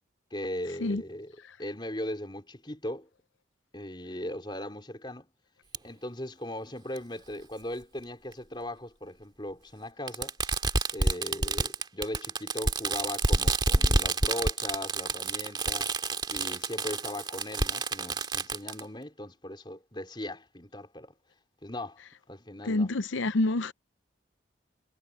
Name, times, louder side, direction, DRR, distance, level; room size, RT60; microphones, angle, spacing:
voice 1, 0.3-3.1 3.7-5.3 5.8-10.3 10.9-15.9 16.3-21.1 21.6-22.0 22.3-22.9, left 1 dB, 25° left, 4.0 m, -38 dB
Fireworks, 5.7-5.8 7.0-7.1 8.3-8.4 10.1-18.8, right 2 dB, 25° right, 2.4 m, -28 dB
voice 2, 22.6-23.7, left 2 dB, 80° left, 0.7 m, -27 dB
head